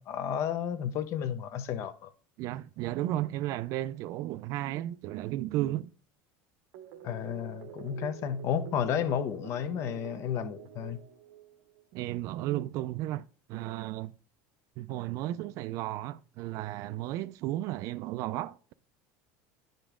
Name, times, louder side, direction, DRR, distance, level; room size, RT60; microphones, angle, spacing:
voice 1, 0.0-2.1 7.0-11.0, left 8 dB, 45° left, 0.7 m, -32 dB
voice 2, 2.4-5.9 11.9-14.1 14.8-18.7, right 15 dB, 50° right, 0.4 m, -34 dB
sound 1, 6.7-11.9, right 10 dB, 65° right, 0.8 m, -47 dB
10.0 x 5.1 x 3.6 m
cardioid pair, 150°, 7 cm